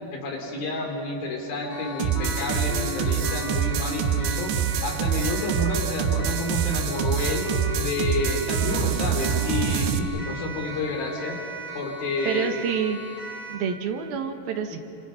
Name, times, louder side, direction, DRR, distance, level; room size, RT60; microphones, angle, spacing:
voice 1, 0.1-4.5 4.8-7.5 7.7-11.4 11.7-12.5 14.7-14.8, left 2 dB, 60° left, 1 dB, 4.8 m, -29 dB
Wind instrument woodwind instrument, 1.6-10.0, left 7 dB, 80° left, 1.6 m, -39 dB
Siren, 1.7-13.7, right 2 dB, 40° left, 4.6 m, -38 dB
sound 1, 2.0-10.0, right 8 dB, 80° right, 3.3 m, -26 dB
voice 2, 12.3-13.0 13.5-14.8, right 7 dB, 65° right, 5 dB, 3.0 m, -27 dB
29.0 x 26.0 x 5.7 m, 3.0 s
omnidirectional pair, 5.0 m